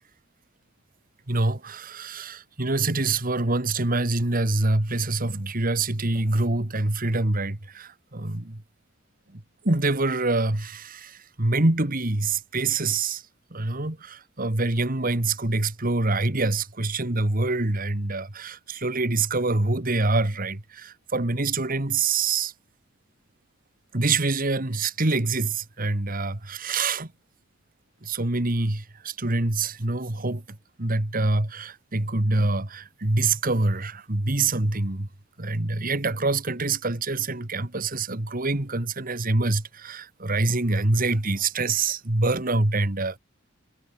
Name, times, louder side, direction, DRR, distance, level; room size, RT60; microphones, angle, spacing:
voice 1, 1.3-8.6 9.6-13.2 13.5-22.5 23.9-27.1 28.0-30.4 30.8-35.1 35.4-43.2, right 2 dB, 45° right, 1.9 m, -25 dB
head